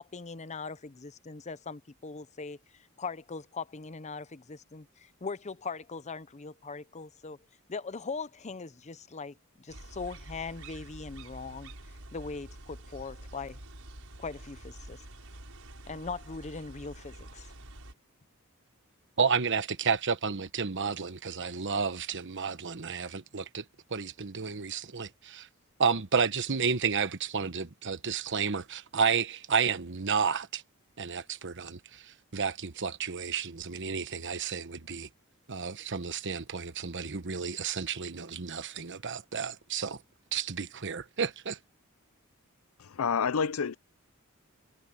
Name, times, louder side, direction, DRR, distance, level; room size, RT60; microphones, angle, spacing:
voice 1, 0.0-2.6 3.0-7.4 7.7-11.7 12.1-13.6 14.2-15.0 15.9-17.5, left 4 dB, 35° left, 0.7 m, -40 dB
sound 1, 9.7-17.9, right 1 dB, 80° right, 6.0 m, -47 dB
voice 2, 19.2-23.6 23.9-25.5 25.8-30.6 31.0-35.1 35.5-40.0 40.3-41.6, right 6 dB, 60° right, 1.1 m, -31 dB
voice 3, 42.8-43.8, left 6 dB, 75° left, 0.5 m, -28 dB
head